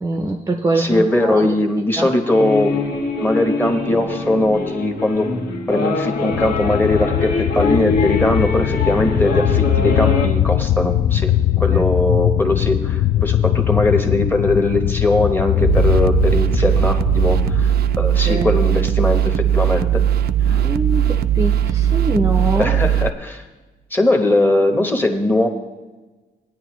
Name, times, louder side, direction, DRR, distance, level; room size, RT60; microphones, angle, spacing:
voice 1, 0.0-1.5 2.0-2.1 11.7-11.8 18.2-18.5 20.5-22.7, right 2 dB, 20° right, 3 dB, 0.5 m, -23 dB
voice 2, 0.7-2.8 3.2-5.3 5.7-20.0 20.5-20.6 22.6-23.4 23.9-25.5, left 2 dB, 10° left, 4 dB, 0.9 m, -20 dB
sound 1, 2.3-10.3, left 3 dB, 90° left, 2.0 m, -23 dB
sound 2, 6.3-17.7, left 12 dB, 65° left, 0.4 m, -20 dB
sound 3, 15.6-23.1, right 10 dB, 70° right, 0.4 m, -18 dB
17.0 x 9.8 x 3.1 m, 1.2 s
wide cardioid pair, 175°, 17 cm